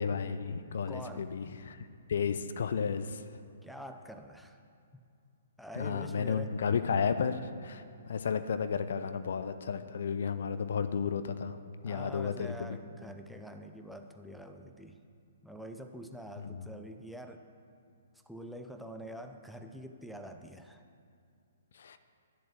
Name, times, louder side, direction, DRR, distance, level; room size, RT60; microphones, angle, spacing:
voice 1, 0.0-1.8 2.1-3.2 5.7-11.6 11.8-12.5 16.5-16.6 21.8-22.0, left 6 dB, 55° left, 11 dB, 0.6 m, -33 dB
voice 2, 0.9-1.4 3.6-4.6 4.9-5.0 5.6-6.6 11.8-15.0 15.4-17.4 18.3-20.8, equal, ahead, 4 dB, 0.6 m, -45 dB
11.0 x 7.4 x 7.6 m, 2.5 s
figure-of-eight pair, 120°, 0 cm